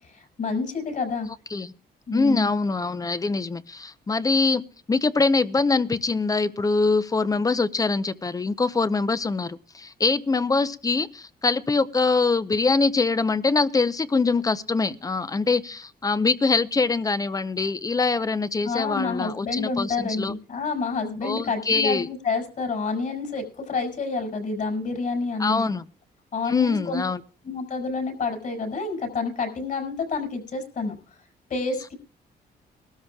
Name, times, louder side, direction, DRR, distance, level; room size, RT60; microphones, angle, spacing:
voice 1, 0.0-1.3 2.1-2.5 18.6-25.7 26.3-27.0 27.4-31.0 31.5-32.0, left 4 dB, 55° left, 3 dB, 5.6 m, -28 dB
voice 2, 2.1-4.6 4.9-20.3 21.2-22.1 25.4-25.9 26.5-27.2, left 3 dB, 20° left, 14 dB, 0.7 m, -23 dB
21.5 x 13.0 x 2.4 m, 0.40 s
cardioid pair, 110°, 17 cm